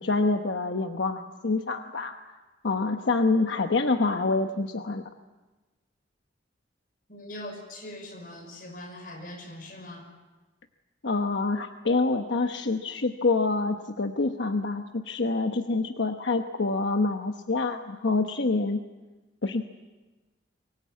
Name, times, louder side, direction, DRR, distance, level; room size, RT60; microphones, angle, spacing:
voice 1, 0.0-2.1 2.6-5.0 11.0-18.8 19.4-19.6, left 3 dB, 90° left, 6 dB, 1.0 m, -26 dB
voice 2, 7.1-10.1, left 1 dB, 50° left, 2 dB, 5.8 m, -41 dB
24.0 x 19.5 x 8.5 m, 1.2 s
head